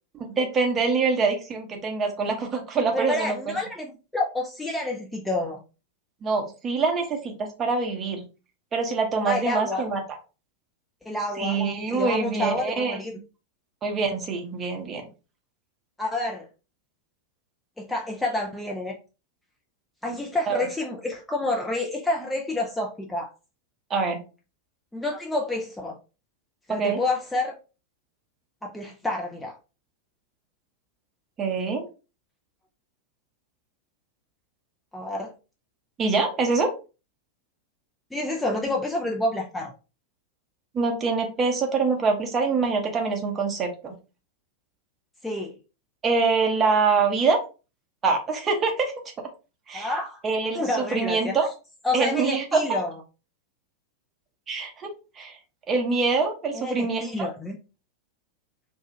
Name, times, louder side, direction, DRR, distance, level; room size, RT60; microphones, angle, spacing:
voice 1, 0.2-3.5 6.2-8.3 8.7-10.0 11.4-13.0 13.8-15.1 20.5-20.6 23.9-24.2 26.7-27.0 31.4-31.8 36.0-36.7 40.7-43.9 46.0-47.4 48.0-48.9 49.7-49.9 50.2-51.5 51.9-52.6 54.5-55.3 55.7-57.1, right 4 dB, 25° right, 2 dB, 0.8 m, -25 dB
voice 2, 2.9-5.6 9.3-9.9 11.0-11.6 11.9-13.2 16.0-16.5 17.8-19.0 20.0-23.3 24.9-26.0 26.7-27.6 28.6-29.5 34.9-35.3 38.1-39.7 45.2-45.6 49.7-50.2 50.5-51.4 51.8-52.9 56.5-57.6, left 2 dB, 5° left, -1 dB, 0.4 m, -29 dB
2.6 x 2.3 x 2.7 m, 0.32 s
figure-of-eight pair, 90°, 0 cm